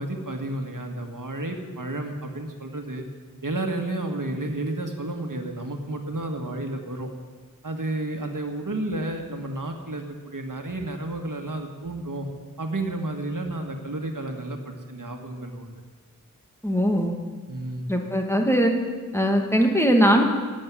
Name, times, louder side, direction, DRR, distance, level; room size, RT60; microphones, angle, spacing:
voice 1, 0.0-3.1 3.4-7.1 7.6-12.3 12.6-15.7 17.5-17.9, right 2 dB, 65° right, 3 dB, 1.7 m, -31 dB
voice 2, 16.6-17.1 17.9-18.7 19.1-20.2, equal, 10° left, 2 dB, 2.0 m, -20 dB
12.0 x 9.1 x 9.4 m, 1.5 s
wide cardioid pair, 45°, 34 cm